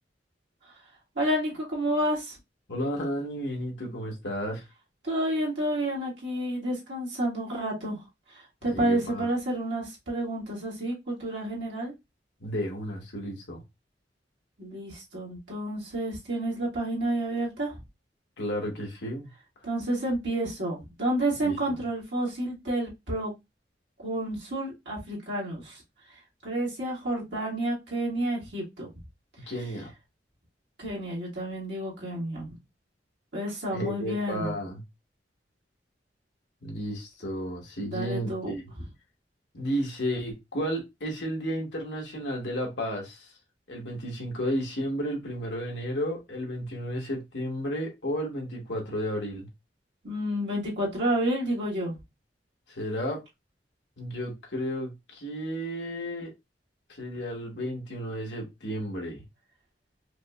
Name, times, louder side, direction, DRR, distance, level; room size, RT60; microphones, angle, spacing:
voice 1, 1.1-2.4 5.0-8.0 8.3-11.9 14.6-17.8 19.6-23.3 24.0-25.8 26.4-28.9 30.8-32.6 33.3-34.5 37.8-38.5 50.0-52.0, right 1 dB, 70° right, 1.6 m, -30 dB
voice 2, 2.7-4.6 8.7-9.3 12.4-13.6 18.4-19.3 21.4-21.6 29.5-29.9 33.7-34.8 36.6-38.6 39.5-43.3 43.7-49.5 52.7-53.2 54.0-56.3 56.9-59.2, equal, 70° left, 1.3 m, -32 dB
4.9 x 2.1 x 2.3 m
head